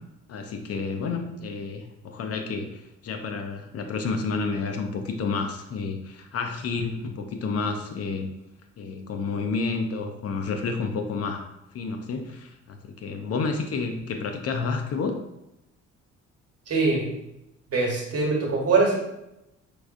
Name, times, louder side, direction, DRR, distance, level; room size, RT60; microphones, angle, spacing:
voice 1, 0.3-8.3 8.8-11.5 11.7-15.2, left 4 dB, 55° left, 5 dB, 0.5 m, -30 dB
voice 2, 16.7-17.0 17.7-19.0, right 3 dB, 50° right, -1 dB, 1.2 m, -22 dB
4.7 x 2.4 x 2.5 m, 0.88 s
cardioid pair, 90°, 30 cm